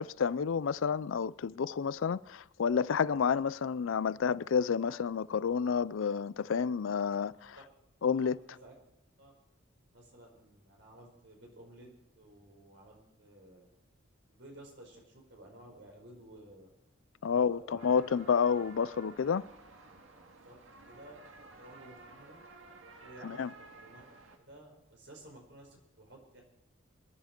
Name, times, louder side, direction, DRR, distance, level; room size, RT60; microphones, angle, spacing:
voice 1, 0.0-7.6 8.0-8.4 17.2-19.4 23.4-23.5, left 6 dB, 75° left, 0.4 m, -30 dB
voice 2, 7.3-7.6 8.1-8.8 9.2-9.3 9.9-11.9 12.1-13.7 14.3-16.7 17.2-18.0 20.4-20.6 20.9-22.4 23.0-24.0 24.4-26.4, right 1 dB, 60° right, 5.0 m, -54 dB
sound 1, 17.8-24.4, right 3 dB, 85° right, 2.0 m, -53 dB
24.5 x 10.5 x 4.5 m
head